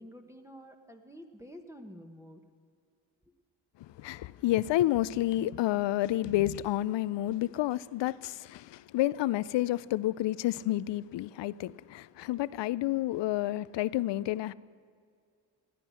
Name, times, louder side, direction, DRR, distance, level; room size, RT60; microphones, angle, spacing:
voice 1, 0.0-2.4, equal, 5° right, 1.2 m, -49 dB
voice 2, 3.8-14.5, left 15 dB, 70° left, 0.5 m, -30 dB
17.0 x 9.9 x 6.3 m
supercardioid pair, 60°, 46 cm